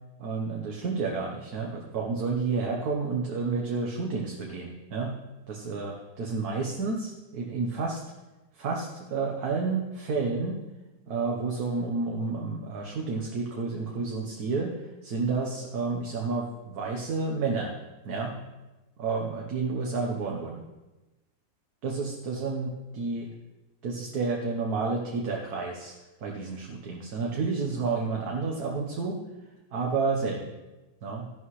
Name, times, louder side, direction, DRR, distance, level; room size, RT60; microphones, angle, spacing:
voice 1, 0.2-5.1 5.5-8.0 8.5-10.6 11.1-17.7 18.0-18.4 19.0-20.6 21.8-23.3 23.8-25.9 26.2-29.2 29.7-30.5 31.0-31.3, right 4 dB, 60° right, 0 dB, 1.5 m, -30 dB
13.0 x 11.5 x 3.2 m, 1.1 s
omnidirectional pair, 1.9 m